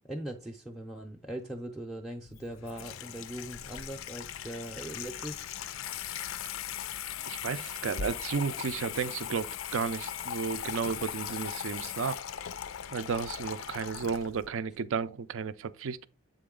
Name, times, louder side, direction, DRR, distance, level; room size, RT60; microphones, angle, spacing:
voice 1, 0.1-5.5 6.1-6.3, right 1 dB, ahead, 0.5 m, -40 dB
Water tap faucet / Sink (filling or washing), 2.2-14.5, left 9 dB, 75° left, 0.4 m, -39 dB
voice 2, 7.3-12.2 12.9-16.1, right 5 dB, 70° right, 0.4 m, -33 dB
7.7 x 3.9 x 3.7 m
head